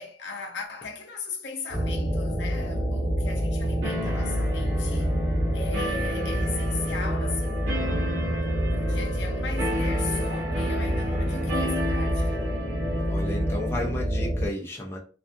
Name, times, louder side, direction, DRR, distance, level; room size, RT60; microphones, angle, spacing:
voice 1, 0.0-5.1 5.5-7.9 8.5-12.4, left 4 dB, 65° left, 0.6 m, -38 dB
sound 1, 1.7-14.5, equal, 30° right, 1.3 m, -27 dB
sound 2, 3.8-13.9, equal, 75° right, 0.9 m, -34 dB
voice 2, 13.1-15.0, left 1 dB, 15° left, 0.4 m, -33 dB
2.5 x 2.3 x 2.5 m
head